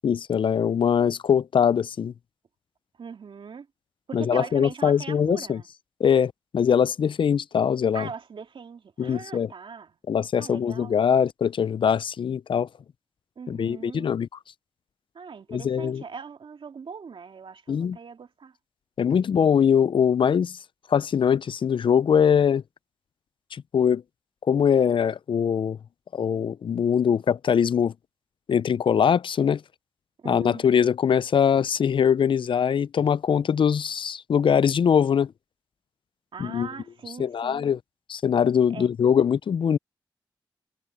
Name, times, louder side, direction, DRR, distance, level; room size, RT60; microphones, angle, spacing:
voice 1, 0.0-2.1 4.1-5.6 6.0-8.1 9.0-9.5 10.1-12.7 13.5-14.3 15.5-16.0 17.7-18.0 19.0-20.6 20.9-22.6 23.5-24.0 24.5-25.8 26.1-27.9 28.5-29.6 30.3-35.3 36.4-36.7 37.2-37.8 38.1-39.8, left 7 dB, 65° left, 0.4 m, -22 dB
voice 2, 3.0-3.7 4.1-5.7 7.9-10.0 10.4-10.9 13.4-14.1 15.1-18.5 30.2-30.6 36.3-37.7 38.7-38.9, right 6 dB, 70° right, 2.8 m, -40 dB
cardioid pair, 50°, 9 cm